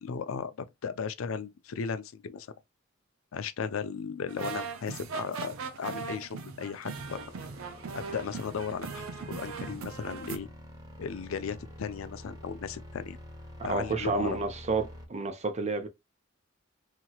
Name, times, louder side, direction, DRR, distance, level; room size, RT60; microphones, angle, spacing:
voice 1, 0.0-2.5 3.3-7.2 7.9-10.5 11.0-13.2 13.6-14.4, left 6 dB, 80° left, 0.4 m, -36 dB
sound 1, 4.3-10.4, right 5 dB, 85° right, 0.5 m, -39 dB
sound 2, 6.9-15.1, left 1 dB, 20° right, 1.0 m, -47 dB
voice 2, 13.7-15.9, right 3 dB, 35° right, 0.6 m, -30 dB
2.9 x 2.9 x 2.3 m
head